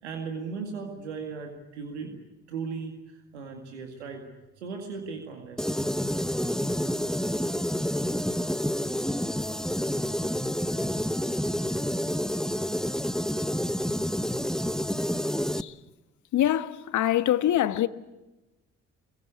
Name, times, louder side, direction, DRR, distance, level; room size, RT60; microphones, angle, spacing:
voice 1, 0.0-2.2 2.5-4.2 4.6-5.7, right 5 dB, 85° right, 2.2 m, -37 dB
sound 1, 5.6-15.6, equal, ahead, 1.1 m, -28 dB
voice 2, 16.3-17.9, left 12 dB, 60° left, 1.3 m, -24 dB
24.5 x 22.5 x 8.4 m
hypercardioid pair, 45°, 33 cm